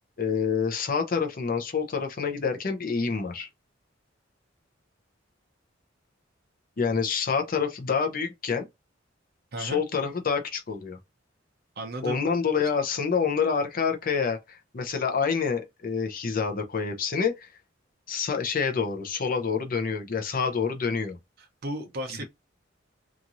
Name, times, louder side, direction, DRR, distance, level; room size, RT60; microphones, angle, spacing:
voice 1, 0.2-3.5 6.8-8.7 9.6-11.0 12.0-17.5 18.1-21.2, left 5 dB, 45° left, 0.6 m, -27 dB
voice 2, 9.5-9.8 11.8-12.2 21.4-22.2, right 1 dB, 55° right, 0.6 m, -34 dB
2.9 x 2.5 x 2.5 m
head